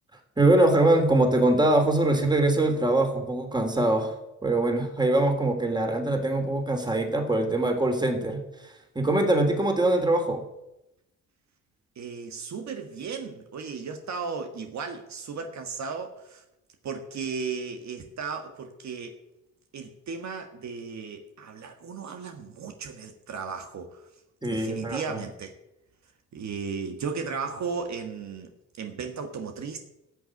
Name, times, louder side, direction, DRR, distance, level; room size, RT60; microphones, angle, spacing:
voice 1, 0.4-4.2 4.4-8.4 8.9-10.4 24.4-25.2, right 2 dB, 15° right, 4 dB, 3.2 m, -23 dB
voice 2, 11.9-16.4 16.8-19.2 19.7-24.1 24.5-25.5 26.3-28.5 28.8-29.8, right 5 dB, 60° right, 5 dB, 1.7 m, -35 dB
14.0 x 6.9 x 9.8 m, 0.89 s
cardioid pair, 85°, 31 cm